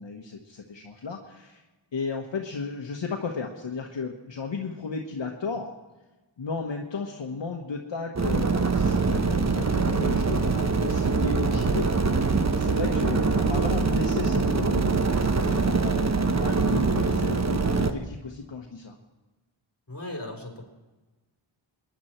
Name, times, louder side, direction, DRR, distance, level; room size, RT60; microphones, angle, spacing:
voice 1, 0.0-1.6 1.9-5.7 6.4-12.1 12.4-19.0, left 4 dB, 65° left, 1 dB, 1.3 m, -34 dB
sound 1, 8.2-17.9, right 4 dB, 35° right, 1.0 m, -24 dB
voice 2, 19.9-20.7, left 1 dB, 35° left, 0 dB, 4.1 m, -37 dB
22.5 x 10.5 x 4.5 m, 1.2 s
wide cardioid pair, 70°, 47 cm